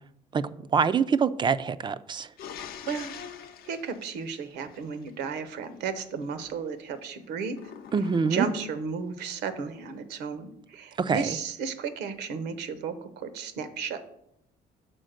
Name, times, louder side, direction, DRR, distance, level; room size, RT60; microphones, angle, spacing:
voice 1, 0.3-2.3 7.9-8.5 11.0-11.4, right 6 dB, 30° right, 0.3 m, -25 dB
sound 1, 2.4-5.1 7.5-8.9, left 8 dB, 65° left, 0.7 m, -43 dB
voice 2, 3.6-7.6 8.3-14.1, right 5 dB, 85° right, 0.9 m, -34 dB
6.3 x 4.2 x 6.4 m
cardioid pair, 110°, 17 cm